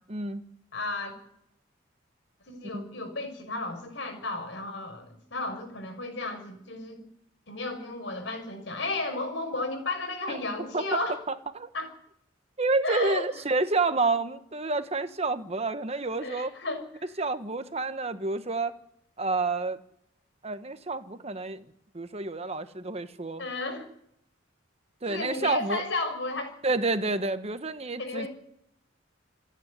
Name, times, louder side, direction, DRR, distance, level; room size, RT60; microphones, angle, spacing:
voice 1, 0.1-0.4 2.7-2.9 10.3-10.4 10.7-11.0 11.5-11.7 12.6-16.5 17.2-18.7 19.2-19.8 20.4-21.7 21.9-23.4 25.0-25.8 26.6-28.3, right 3 dB, 30° right, 10 dB, 1.2 m, -29 dB
voice 2, 0.7-1.1 2.5-7.0 7.5-11.2 11.7-11.9 12.8-13.3 16.2-16.8 23.4-23.9 25.1-26.5 28.0-28.3, left 2 dB, 65° left, 7 dB, 6.3 m, -33 dB
28.5 x 10.0 x 9.7 m, 0.75 s
head